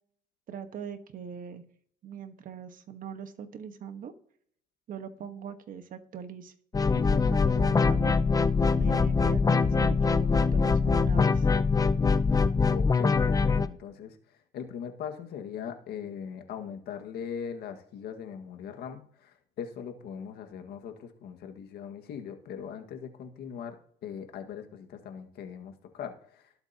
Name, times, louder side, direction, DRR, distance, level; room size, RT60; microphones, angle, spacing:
voice 1, 0.5-1.6 2.0-4.1 4.9-6.5 6.9-8.1 8.7-11.5, right 7 dB, 55° right, 9 dB, 1.4 m, -41 dB
sound 1, 6.7-13.7, left 4 dB, 20° left, 0.6 m, -23 dB
voice 2, 12.7-26.5, left 7 dB, 70° left, 5 dB, 1.8 m, -40 dB
19.5 x 7.9 x 2.9 m, 0.62 s
cardioid pair, 110°, 17 cm